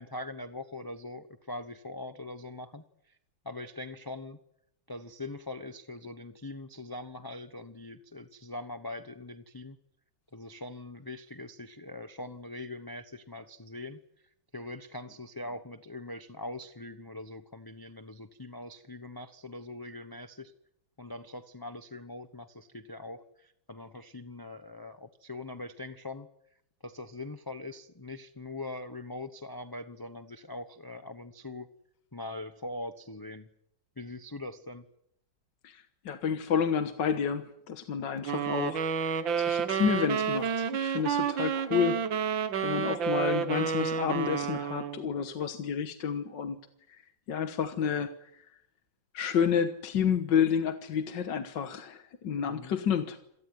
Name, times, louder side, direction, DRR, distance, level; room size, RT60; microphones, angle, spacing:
voice 1, 0.0-3.2 3.4-4.4 4.9-9.8 10.3-14.0 14.5-20.5 21.0-26.3 26.8-31.7 32.1-33.5 34.0-34.8 52.4-52.8, left 2 dB, 20° left, 10 dB, 0.6 m, -42 dB
voice 2, 35.6-38.8 39.1-42.3 42.6-46.6 46.9-47.0 47.3-48.4 49.1-53.2, left 7 dB, 65° left, 9 dB, 1.9 m, -30 dB
sound 1, 38.3-45.1, right 7 dB, 70° right, 2.1 m, -30 dB
27.5 x 18.5 x 9.6 m, 0.77 s
omnidirectional pair, 2.2 m